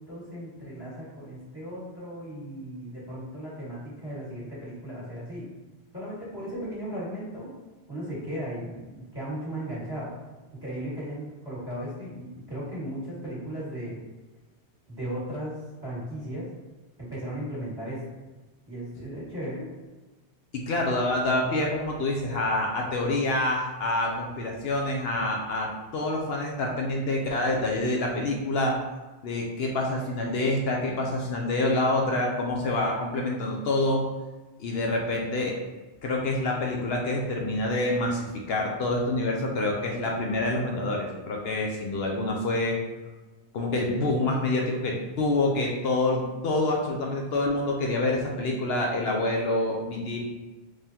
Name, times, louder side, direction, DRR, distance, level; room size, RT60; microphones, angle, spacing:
voice 1, 0.0-5.5 5.9-7.5 7.9-10.1 10.5-14.0 14.9-16.5 17.0-18.1 18.7-19.7, right 1 dB, 20° right, -8 dB, 1.5 m, -36 dB
voice 2, 20.5-28.7 29.2-34.0 34.6-35.5 36.0-42.8 43.5-50.2, left 2 dB, 70° left, -1 dB, 0.8 m, -27 dB
3.7 x 3.2 x 2.8 m, 1.2 s
omnidirectional pair, 1.1 m